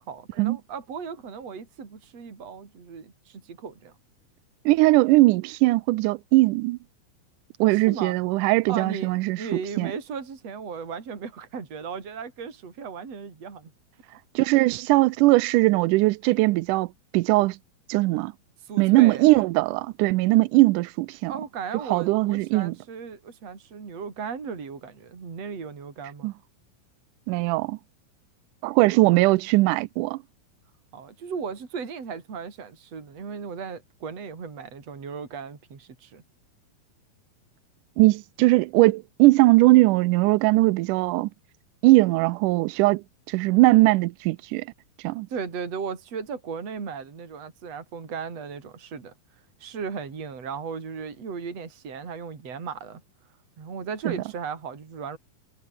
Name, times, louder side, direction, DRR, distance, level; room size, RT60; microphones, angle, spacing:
voice 1, 0.0-3.9 7.7-8.2 8.7-13.7 18.7-19.3 21.3-26.3 28.9-29.2 30.9-36.2 45.3-49.1 49.6-53.0 53.6-55.2, right 6 dB, 45° right, 4.9 m, -36 dB
voice 2, 4.7-6.8 7.6-9.4 9.8-9.9 14.4-16.9 17.1-17.6 17.9-18.3 18.8-21.3 21.9-22.7 26.2-26.3 27.3-27.8 28.6-30.2 38.0-41.3 41.8-44.7 45.0-45.3 54.1-54.2, right 20 dB, 80° right, 1.9 m, -20 dB
omnidirectional pair, 4.2 m